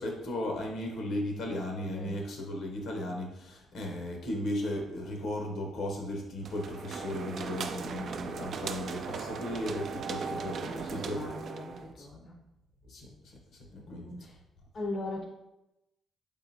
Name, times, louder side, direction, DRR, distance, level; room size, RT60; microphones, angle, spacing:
voice 1, 0.0-11.3 12.0-12.1 12.9-14.1, left 1 dB, 70° left, 1 dB, 0.9 m, -36 dB
sound 1, 6.4-11.9, right 5 dB, 60° right, 0.3 m, -38 dB
voice 2, 10.2-12.3 13.7-14.4 14.7-15.2, left 2 dB, 40° left, 1 dB, 0.6 m, -40 dB
3.9 x 3.6 x 2.7 m, 0.92 s
cardioid pair, 90°, 0 cm